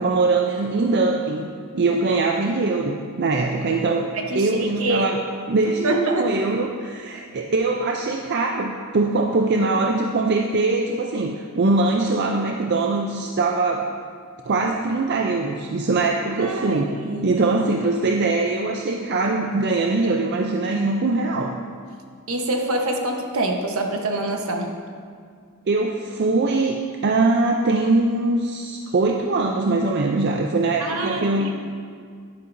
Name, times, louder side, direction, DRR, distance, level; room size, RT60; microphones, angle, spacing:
voice 1, 0.0-1.5 1.7-4.1 4.3-5.2 5.5-13.9 14.4-16.9 17.2-21.6 25.7-31.5, right 3 dB, 50° right, 2 dB, 0.5 m, -22 dB
voice 2, 4.1-5.1 5.8-6.4 7.1-7.2 16.3-17.4 22.3-24.7 30.8-31.5, right 2 dB, 70° right, 2 dB, 1.1 m, -25 dB
11.0 x 10.5 x 2.6 m, 2.1 s
head